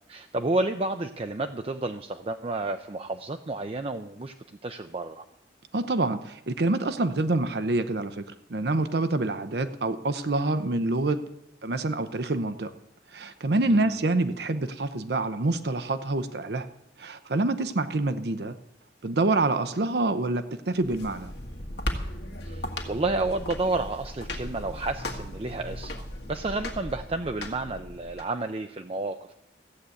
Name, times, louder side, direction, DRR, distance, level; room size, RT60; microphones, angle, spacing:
voice 1, 0.1-4.3 4.6-5.2 13.7-13.9 22.4-29.3, right 2 dB, 35° right, 7 dB, 0.5 m, -31 dB
voice 2, 5.7-8.2 8.5-11.2 11.6-12.7 13.1-16.7 17.0-18.6 19.0-21.3, right 2 dB, 70° right, 10 dB, 0.7 m, -26 dB
sound 1, 20.8-28.2, left 1 dB, 75° left, 1.7 m, -37 dB
14.0 x 7.8 x 8.4 m, 0.82 s
head